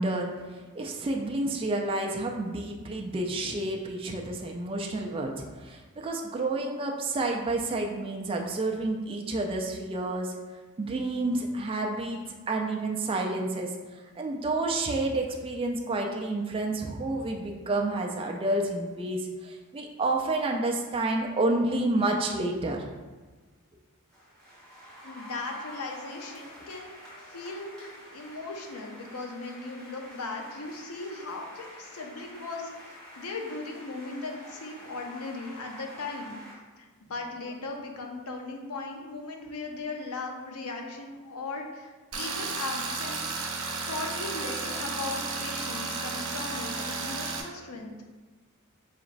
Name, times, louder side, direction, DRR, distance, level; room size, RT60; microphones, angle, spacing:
voice 1, 0.0-10.3 10.8-22.8, right 2 dB, 25° right, 1 dB, 0.3 m, -30 dB
sound 1, 24.1-36.5, equal, 5° left, 1.4 m, -48 dB
voice 2, 25.0-36.4 36.8-43.3 43.9-48.0, left 3 dB, 75° left, 2 dB, 0.6 m, -38 dB
Tools, 42.1-47.4, right 4 dB, 75° right, 0.7 m, -33 dB
4.9 x 2.9 x 2.5 m, 1.3 s
head